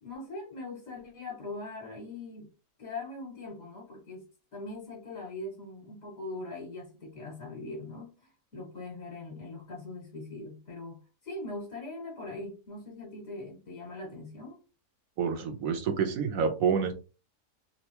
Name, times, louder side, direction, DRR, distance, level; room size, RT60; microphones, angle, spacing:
voice 1, 0.0-2.5 2.8-4.2 4.5-8.2 8.5-14.6, left 2 dB, 65° left, 2.0 m, -41 dB
voice 2, 15.2-16.9, right 6 dB, 70° right, 1.2 m, -28 dB
4.3 x 2.0 x 2.8 m
omnidirectional pair, 1.6 m